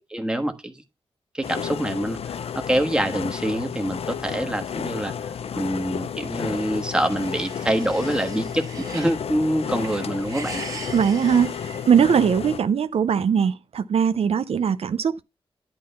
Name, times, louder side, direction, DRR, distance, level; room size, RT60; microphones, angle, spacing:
voice 1, 0.1-0.7 1.3-5.1 5.5-10.6, right 1 dB, 10° right, 1.4 m, -25 dB
sound 1, 1.4-12.6, left 7 dB, 80° left, 0.5 m, -32 dB
sound 2, 6.5-9.2 9.6-12.5, right 3 dB, 35° right, 2.0 m, -40 dB
voice 2, 10.9-11.6 11.9-15.2, right 7 dB, 75° right, 0.5 m, -20 dB
11.0 x 3.7 x 5.6 m
wide cardioid pair, 95°, 10 cm